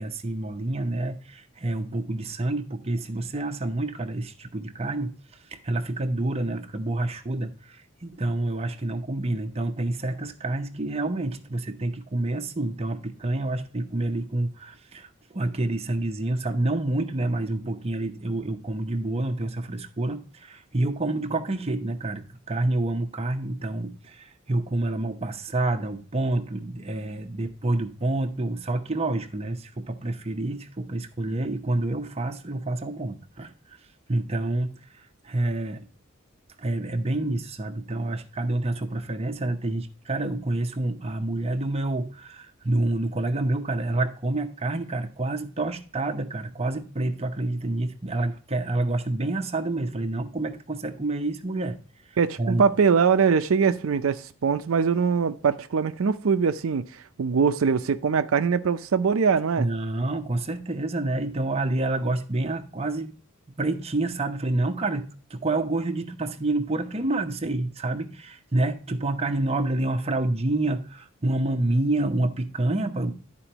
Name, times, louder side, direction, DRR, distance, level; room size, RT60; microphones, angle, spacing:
voice 1, 0.0-5.2 5.5-33.5 34.1-35.9 36.6-51.8 52.1-52.7 59.6-63.1 63.6-73.1, right 2 dB, 30° right, 0.8 m, -28 dB
voice 2, 52.2-59.7, right 6 dB, 80° right, 0.5 m, -22 dB
11.5 x 4.5 x 2.8 m
head